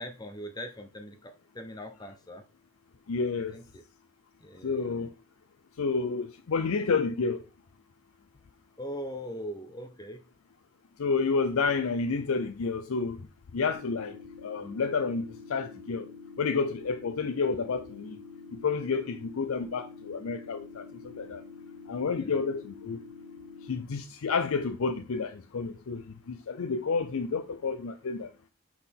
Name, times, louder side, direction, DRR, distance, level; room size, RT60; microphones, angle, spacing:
voice 1, 0.0-2.4 3.5-3.8 4.4-5.1 8.8-10.2 22.2-22.4, equal, 20° left, 0.7 m, -41 dB
voice 2, 3.1-3.6 4.6-5.1 5.8-7.4 11.0-13.2 13.5-16.1 16.4-18.2 18.5-21.4 21.9-23.0 23.7-28.3, left 4 dB, 80° left, 0.5 m, -30 dB
sound 1, 13.7-23.7, left 5 dB, 55° right, 2.4 m, -47 dB
6.2 x 5.7 x 3.5 m
head